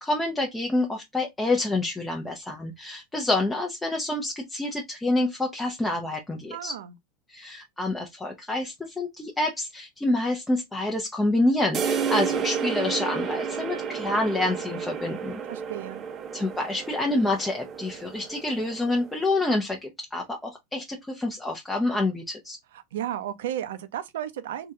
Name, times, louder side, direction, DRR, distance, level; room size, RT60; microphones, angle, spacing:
voice 1, 0.0-6.7 7.3-15.4 16.3-22.6, left 2 dB, 10° left, 0.6 m, -27 dB
voice 2, 6.5-6.9 15.5-16.0 22.9-24.7, right 11 dB, 85° right, 0.6 m, -33 dB
sound 1, 11.7-19.3, right 6 dB, 35° right, 0.6 m, -31 dB
3.6 x 2.2 x 2.7 m
supercardioid pair, 125°, 0 cm